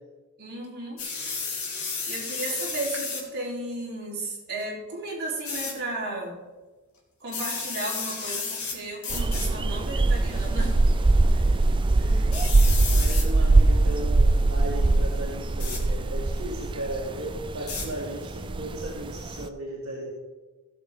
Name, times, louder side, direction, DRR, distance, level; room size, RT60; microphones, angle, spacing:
voice 1, 0.4-1.0 2.1-6.4 7.2-10.8, right 2 dB, 50° right, -5 dB, 3.9 m, -34 dB
sound 1, 1.0-3.3 5.4-5.7 7.3-8.8 9.0-9.5 10.3-10.7 12.3-13.2 15.6-15.8 17.7-17.9, left 4 dB, 75° left, 2.8 m, -32 dB
sound 2, 9.1-19.5, right 2 dB, 20° right, 0.4 m, -22 dB
voice 2, 11.3-12.3 12.8-20.1, right 1 dB, 70° right, -4 dB, 2.1 m, -36 dB
16.5 x 7.2 x 3.7 m, 1.3 s
head